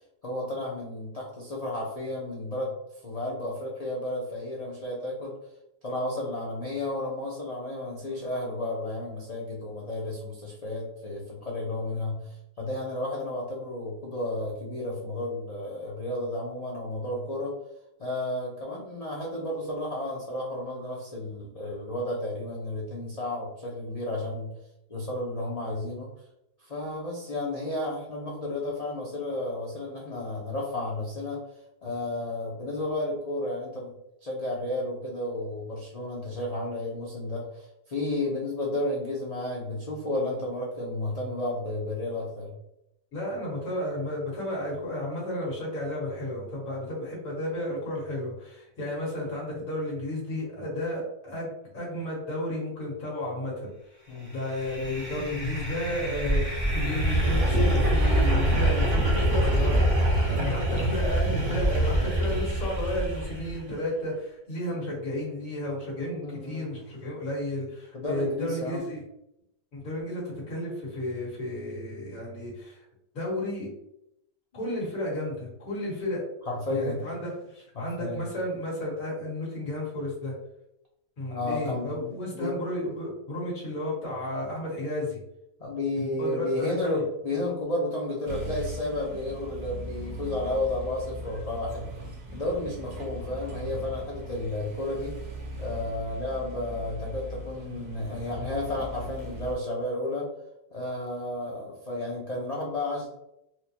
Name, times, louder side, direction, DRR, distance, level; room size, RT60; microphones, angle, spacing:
voice 1, 0.2-2.8 3.0-5.3 5.8-17.6 18.0-24.5 24.9-26.1 26.7-31.4 31.8-33.9 34.2-42.6 54.1-54.3 66.2-66.7 67.9-68.8 76.5-77.0 77.8-78.3 81.3-82.5 85.6-91.9 92.3-95.2 95.6-100.3 100.7-103.1, left 1 dB, 90° left, -4 dB, 0.3 m, -32 dB
voice 2, 43.1-53.7 54.3-69.0 69.7-72.8 73.1-73.7 74.5-76.2 76.7-80.3 81.2-85.2 86.0-87.0, left 1 dB, 60° left, -5 dB, 1.9 m, -33 dB
sound 1, 54.4-63.6, right 1 dB, 40° right, 0.5 m, -25 dB
sound 2, 88.2-99.5, right 1 dB, 65° right, 1.2 m, -39 dB
4.4 x 2.1 x 2.8 m, 0.83 s
omnidirectional pair, 1.7 m